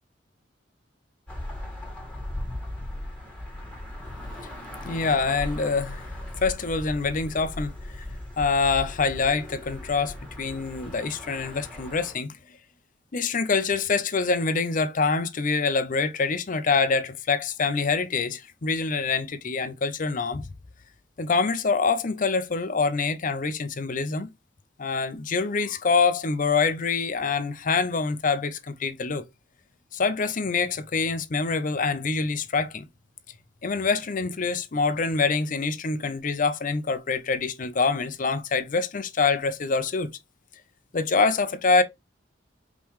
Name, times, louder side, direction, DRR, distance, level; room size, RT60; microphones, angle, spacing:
sound 1, 1.3-12.1, left 1 dB, 5° left, 2.1 m, -38 dB
voice 1, 4.8-6.0 6.4-8.1 8.4-12.3 13.1-20.5 21.2-24.3 24.8-29.3 29.9-32.9 33.6-40.1 40.9-41.8, left 4 dB, 45° left, 0.6 m, -25 dB
5.2 x 3.1 x 3.1 m
head